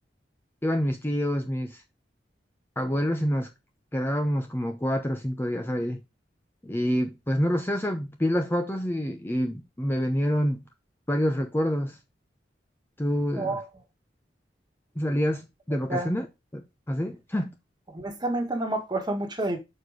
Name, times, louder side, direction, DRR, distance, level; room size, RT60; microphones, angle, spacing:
voice 1, 0.6-1.8 2.8-3.5 3.9-6.0 6.6-10.6 11.1-12.0 13.0-13.6 15.0-16.3 16.5-17.5, equal, 15° left, 0.8 m, -27 dB
voice 2, 13.3-13.6 15.9-16.1 17.9-19.6, right 2 dB, 25° right, 1.7 m, -29 dB
6.6 x 4.8 x 5.1 m
head